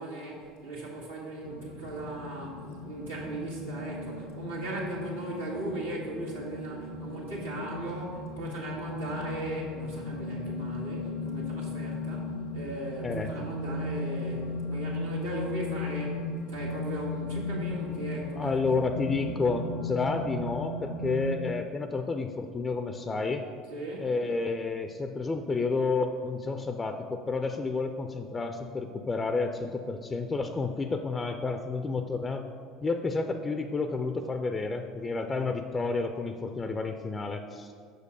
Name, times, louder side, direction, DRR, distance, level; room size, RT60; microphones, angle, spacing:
voice 1, 0.0-18.5 19.1-19.2 23.7-24.1, right 2 dB, 90° right, -6 dB, 1.8 m, -38 dB
sound 1, 1.4-21.4, left 2 dB, 90° left, 0.8 m, -36 dB
voice 2, 18.4-23.4 24.0-32.5 32.8-37.7, left 3 dB, 25° left, 7 dB, 0.4 m, -30 dB
6.1 x 5.2 x 5.0 m, 2.2 s
hypercardioid pair, 70°, 0 cm